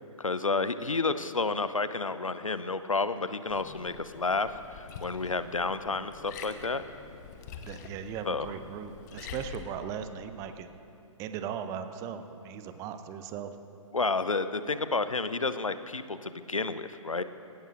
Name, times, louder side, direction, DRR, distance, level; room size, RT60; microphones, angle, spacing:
voice 1, 0.2-6.8 8.2-8.5 13.9-17.2, left 3 dB, 80° left, 13 dB, 0.7 m, -30 dB
Liquid, 3.5-9.6, left 6 dB, 30° left, 1.0 m, -46 dB
voice 2, 7.6-10.8 11.2-13.6, right 8 dB, 20° right, 10 dB, 0.6 m, -38 dB
20.5 x 17.5 x 2.6 m, 2.7 s
figure-of-eight pair, 125°, 17 cm